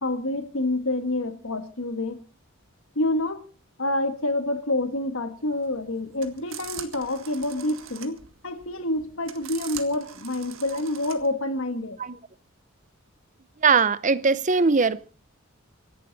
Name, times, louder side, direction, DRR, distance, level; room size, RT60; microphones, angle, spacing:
voice 1, 0.0-2.2 2.9-3.4 3.8-8.2 8.4-12.0, left 2 dB, 65° left, 1.6 m, -27 dB
sound 1, 5.4-11.3, right 10 dB, 65° right, 1.8 m, -42 dB
voice 2, 13.6-15.0, right 4 dB, 35° right, 0.7 m, -20 dB
25.5 x 11.5 x 4.1 m
head